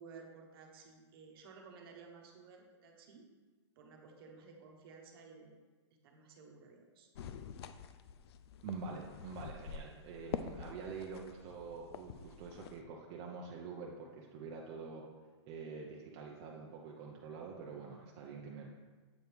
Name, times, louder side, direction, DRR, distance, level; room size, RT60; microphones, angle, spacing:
voice 1, 0.0-3.3 3.8-5.6 6.0-7.1 18.3-18.4, right 4 dB, 50° right, 1 dB, 1.1 m, -55 dB
sound 1, 7.2-12.8, left 7 dB, 60° left, 0.4 m, -46 dB
voice 2, 8.6-15.1 15.5-18.7, right 4 dB, 30° right, -2 dB, 0.6 m, -46 dB
7.9 x 4.4 x 3.5 m, 1.4 s
hypercardioid pair, 150°, 15 cm